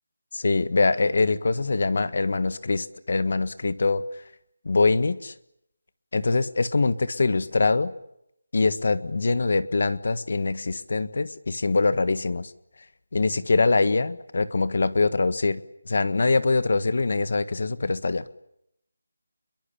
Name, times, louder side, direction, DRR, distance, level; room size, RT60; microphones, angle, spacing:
voice 1, 0.3-4.0 4.6-5.3 6.1-7.9 8.5-12.5 13.1-18.3, left 3 dB, 50° left, 14 dB, 1.5 m, -23 dB
29.0 x 23.0 x 8.5 m, 0.78 s
figure-of-eight pair, 180°, 0 cm